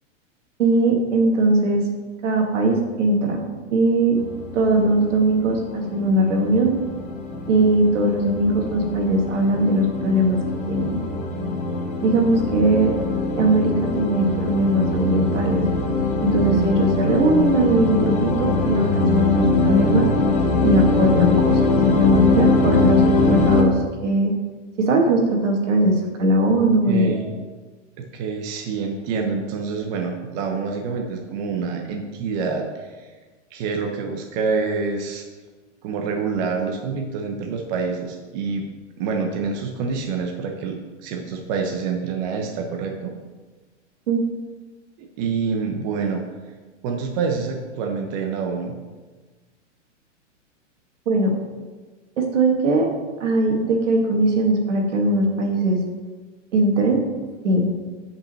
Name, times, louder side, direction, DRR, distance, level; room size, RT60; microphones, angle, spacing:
voice 1, 0.6-1.8 2.2-3.4 3.7-4.2 4.5-6.7 7.5-10.4 10.7-11.0 12.0-13.0 13.4-15.6 16.2-20.1 20.6-23.0 23.3-23.7 24.0-24.3 24.8-27.1 44.1-44.2 51.1-51.4 52.2-52.9 53.2-55.8 56.5-57.0 57.4-57.7, right 1 dB, 75° right, 1 dB, 2.1 m, -20 dB
sound 1, 4.2-23.6, left 3 dB, 20° left, 1.1 m, -22 dB
voice 2, 26.9-27.3 28.0-33.1 33.5-35.2 35.8-38.7 39.0-43.1 45.0-46.5 46.8-48.7, right 5 dB, 35° right, 2 dB, 0.9 m, -27 dB
5.9 x 5.5 x 6.8 m, 1.3 s
hypercardioid pair, 145°, 37 cm